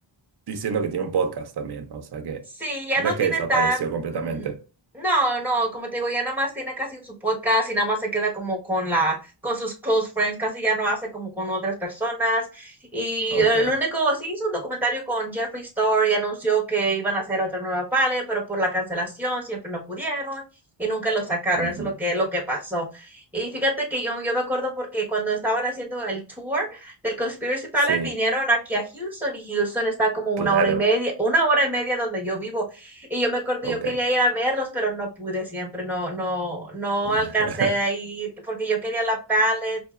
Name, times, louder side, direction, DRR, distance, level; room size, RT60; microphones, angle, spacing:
voice 1, 0.5-2.4 3.0-4.6 13.3-13.7 21.6-21.9 27.9-28.1 30.4-30.8 33.6-34.0 37.1-37.7, right 6 dB, 55° right, 0.7 m, -28 dB
voice 2, 2.6-3.8 4.1-4.5 4.9-9.2 9.4-20.4 20.8-39.8, right 2 dB, 5° right, 1.3 m, -25 dB
5.1 x 2.8 x 2.4 m
wide cardioid pair, 115°, 49 cm